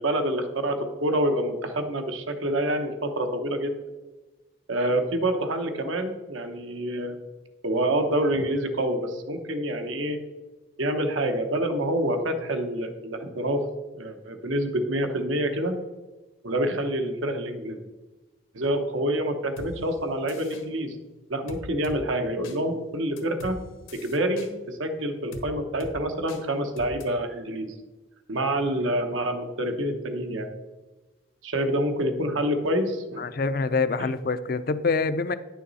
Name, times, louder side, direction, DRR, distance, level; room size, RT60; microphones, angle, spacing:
voice 1, 0.0-3.7 4.7-7.2 7.6-10.2 10.8-13.6 13.9-15.7 16.4-17.8 18.5-21.0 21.3-23.6 23.9-27.7 28.3-30.5 31.4-33.3 34.0-34.1, right 1 dB, 85° right, 5 dB, 1.1 m, -27 dB
sound 1, 19.6-19.7 20.3-20.6 21.5-22.0 22.4-22.6 23.2-23.6 23.9-24.5 25.3-25.5 25.8-25.9 26.3-26.4 26.8-27.0, left 1 dB, 85° left, 1.4 m, -40 dB
voice 2, 33.2-35.3, left 4 dB, 45° left, 13 dB, 0.4 m, -25 dB
9.8 x 6.3 x 4.1 m, 1.2 s
head